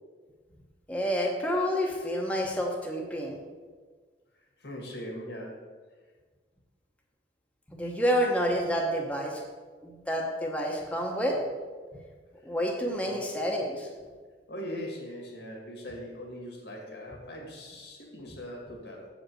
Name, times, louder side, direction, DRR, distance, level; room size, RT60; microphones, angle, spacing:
voice 1, 0.9-3.4 7.7-9.4 9.8-11.4 12.4-13.9, equal, 5° left, -2 dB, 0.9 m, -29 dB
voice 2, 4.6-5.7 13.0-13.2 14.5-19.1, equal, 80° left, 0 dB, 2.2 m, -40 dB
7.6 x 5.1 x 6.3 m, 1.5 s
head